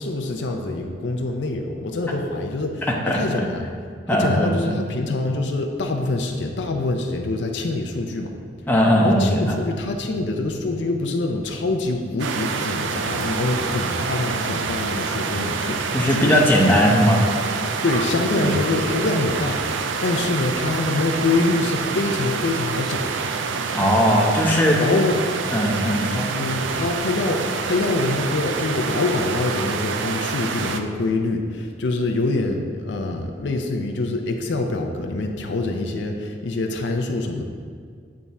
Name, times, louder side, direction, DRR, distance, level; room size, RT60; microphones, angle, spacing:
voice 1, 0.0-3.8 4.1-8.3 9.0-16.4 17.8-23.1 24.8-25.2 26.3-37.4, left 2 dB, 70° left, 4 dB, 0.5 m, -25 dB
voice 2, 4.1-4.8 8.7-9.6 15.9-17.2 18.4-18.5 23.7-24.8 25.5-26.3, equal, 10° left, -3 dB, 0.7 m, -18 dB
sound 1, 12.2-30.8, right 5 dB, 85° right, 0.4 m, -27 dB
8.6 x 3.5 x 4.1 m, 2.1 s
head